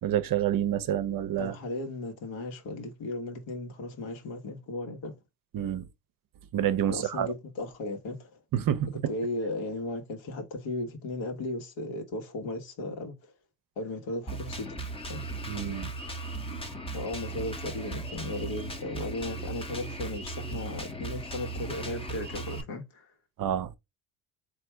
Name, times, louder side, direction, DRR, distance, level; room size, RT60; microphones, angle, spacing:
voice 1, 0.0-1.6 5.5-5.9 6.5-7.3 8.5-9.1 15.5-15.9 16.5-16.6 23.4-23.7, right 10 dB, 45° right, 0.7 m, -28 dB
voice 2, 1.4-5.1 6.9-8.4 8.9-13.3 13.8-14.8 15.1-15.3 16.9-23.1, left 2 dB, 70° left, 1.5 m, -36 dB
Drum kit, 14.3-22.6, right 2 dB, 10° left, 0.8 m, -37 dB
3.5 x 2.8 x 4.3 m
supercardioid pair, 80°, 48 cm